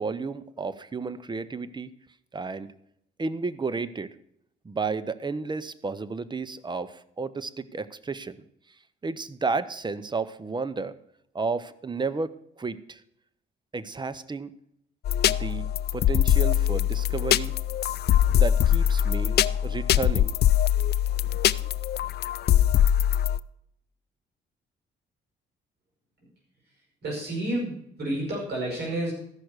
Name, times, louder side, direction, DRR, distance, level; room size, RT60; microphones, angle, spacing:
voice 1, 0.0-1.9 2.3-2.7 3.2-4.2 4.6-8.4 9.0-11.0 11.3-13.0 13.7-14.5 15.3-15.7 15.9-17.5 18.3-19.4 19.6-20.4, right 4 dB, 20° right, 14 dB, 0.7 m, -32 dB
sound 1, 15.1-23.4, left 11 dB, 55° left, 0.4 m, -22 dB
voice 2, 27.0-29.1, right 1 dB, 55° right, -2 dB, 5.6 m, -30 dB
14.0 x 5.9 x 6.5 m, 0.74 s
cardioid pair, 90°, 20 cm